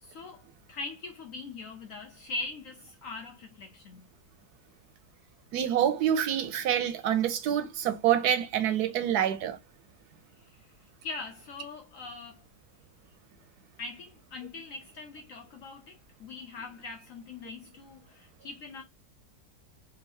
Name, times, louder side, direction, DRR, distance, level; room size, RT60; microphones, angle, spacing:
voice 1, 0.0-0.4 0.7-4.1 10.3-10.7 11.0-12.4 13.8-18.8, left 3 dB, 70° left, 0.8 m, -41 dB
voice 2, 5.5-9.6, right 10 dB, 70° right, 1.0 m, -26 dB
3.5 x 2.8 x 3.2 m
omnidirectional pair, 1.9 m